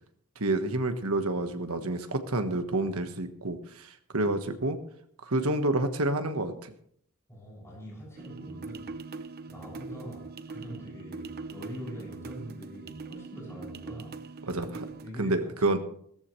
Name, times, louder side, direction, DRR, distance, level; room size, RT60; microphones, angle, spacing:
voice 1, 0.4-4.8 5.2-6.7 14.5-14.9 15.2-15.8, right 2 dB, 70° right, 7 dB, 1.5 m, -29 dB
voice 2, 7.3-8.9 9.5-14.2 15.0-15.8, equal, 15° left, -5 dB, 7.1 m, -43 dB
sound 1, 8.2-15.1, right 4 dB, 45° right, 0.7 m, -42 dB
17.0 x 14.0 x 3.3 m, 0.66 s
head